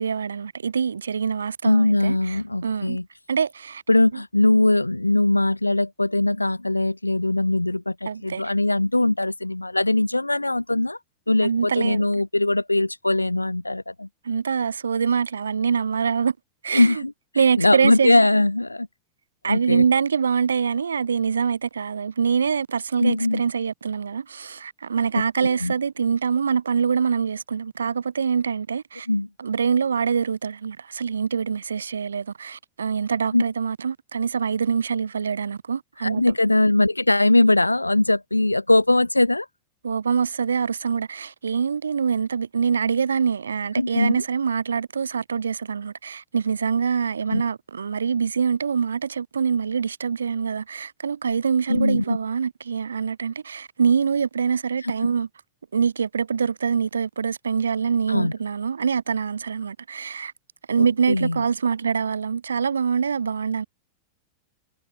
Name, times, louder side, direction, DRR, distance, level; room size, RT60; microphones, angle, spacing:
voice 1, 0.0-3.0 3.3-3.8 8.1-8.5 11.4-12.0 14.2-16.3 16.6-17.0 17.4-18.1 19.4-29.1 29.4-36.2 39.8-55.3 55.7-60.3 60.7-63.6, right 6 dB, 70° right, 0.5 m, -24 dB
voice 2, 1.6-3.0 3.9-11.0 11.3-14.1 16.7-17.1 17.6-18.9 19.4-19.9 23.0-23.4 25.1-25.7 29.1-29.3 33.3-33.4 36.0-39.5 43.8-44.2 47.3-47.4 51.7-52.2 54.8-54.9 58.1-58.3 60.8-61.4, left 2 dB, 85° left, 0.4 m, -21 dB
figure-of-eight pair, 90°, 0 cm